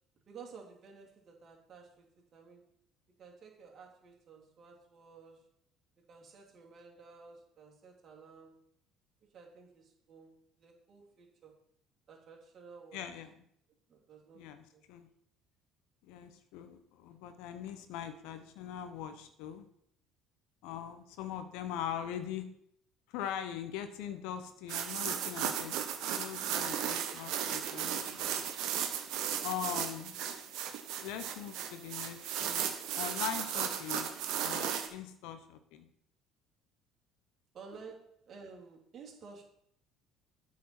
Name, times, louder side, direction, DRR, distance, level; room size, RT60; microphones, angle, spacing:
voice 1, 0.3-2.7 3.2-5.5 6.1-8.6 9.3-11.5 12.1-13.0 13.9-14.4 14.7-14.8 29.6-29.9 37.5-39.4, right 5 dB, 45° right, -1 dB, 2.6 m, -53 dB
voice 2, 12.9-13.3 14.3-15.1 16.0-19.6 20.6-22.5 23.1-25.8 26.1-28.5 29.4-30.1 31.0-35.9, left 9 dB, 70° left, 9 dB, 0.9 m, -41 dB
sound 1, 24.7-34.9, right 9 dB, 65° right, 1.0 m, -35 dB
8.5 x 4.6 x 5.9 m, 0.70 s
hypercardioid pair, 65°, 0 cm